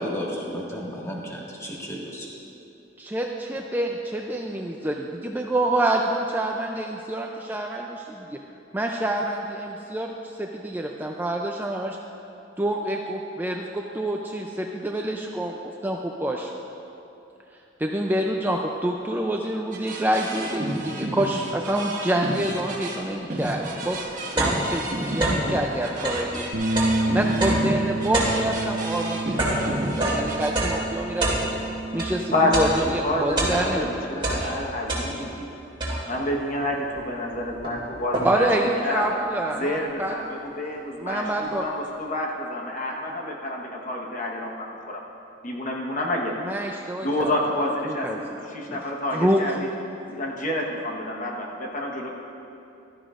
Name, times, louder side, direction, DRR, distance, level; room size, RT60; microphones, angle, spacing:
voice 1, 0.0-2.3, equal, 15° left, -4 dB, 1.8 m, -32 dB
voice 2, 3.0-8.4 8.7-12.0 12.6-16.5 17.8-26.6 27.1-29.2 29.5-31.3 31.9-34.0 34.3-34.5 38.2-40.1 41.0-41.6 46.4-47.4 47.9-48.2 48.7-48.8 49.1-49.6, right 1 dB, 10° right, 1 dB, 0.4 m, -27 dB
sound 1, 19.7-30.5, right 1 dB, 45° right, 1.5 m, -32 dB
sound 2, 23.9-25.6 25.9-32.2 32.5-33.9 34.2-35.4 35.8-36.3 37.0-37.1 37.3-38.6, right 1 dB, 25° right, 2.5 m, -27 dB
Bass guitar, 26.5-32.8, right 2 dB, 65° right, 1.1 m, -29 dB
voice 3, 32.3-32.7 33.0-35.5 36.1-38.5 38.8-39.0 39.6-45.0 45.4-46.3 47.0-49.7 50.1-52.1, left 1 dB, 45° left, -1 dB, 1.2 m, -28 dB
15.5 x 13.0 x 2.5 m, 2.9 s
head